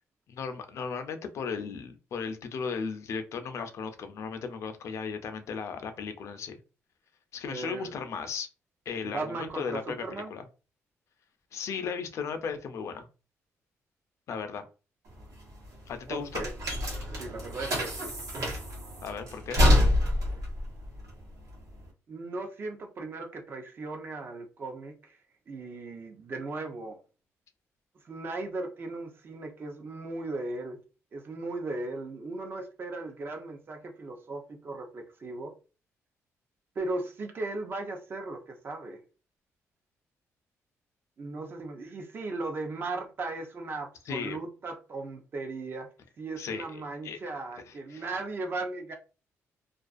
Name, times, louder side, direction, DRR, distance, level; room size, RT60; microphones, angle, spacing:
voice 1, 0.3-6.6 7.3-8.5 8.9-10.4 11.5-13.1 14.3-14.6 15.9-16.4 19.0-19.6 44.1-44.4 46.4-47.2 47.7-48.0, left 6 dB, 60° left, 0.5 m, -36 dB
voice 2, 7.5-7.9 9.0-10.3 16.1-16.5 17.2-18.1 22.1-25.2 25.5-27.0 28.0-30.8 31.1-35.5 36.8-39.0 41.2-45.9 46.2-48.9, right 2 dB, 40° right, 0.6 m, -37 dB
sound 1, 15.1-21.9, left 1 dB, 80° right, 1.0 m, -27 dB
2.4 x 2.3 x 2.4 m
cardioid pair, 125°, 5 cm